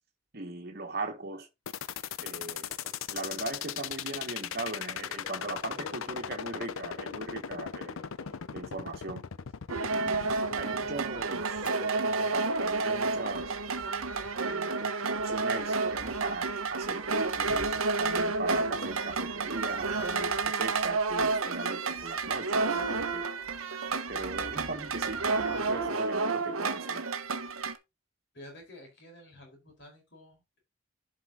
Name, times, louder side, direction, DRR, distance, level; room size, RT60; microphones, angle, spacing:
voice 1, 0.3-1.5 2.2-2.7 3.1-8.0 8.5-9.3 9.9-10.3 10.6-11.6 12.3-13.6 14.4-23.4 24.1-27.1, right 2 dB, 50° right, 1.4 m, -39 dB
sound 1, 1.7-11.7, left 8 dB, 75° left, 0.5 m, -38 dB
sound 2, 2.7-4.1 4.4-9.2 11.0-13.6 14.4-16.4 16.8-19.2 19.5-20.9, left 3 dB, 20° left, 2.2 m, -52 dB
sound 3, 9.7-27.8, right 4 dB, 85° right, 1.1 m, -30 dB
voice 2, 28.3-30.6, left 1 dB, 55° left, 4.4 m, -51 dB
11.0 x 4.9 x 3.7 m
head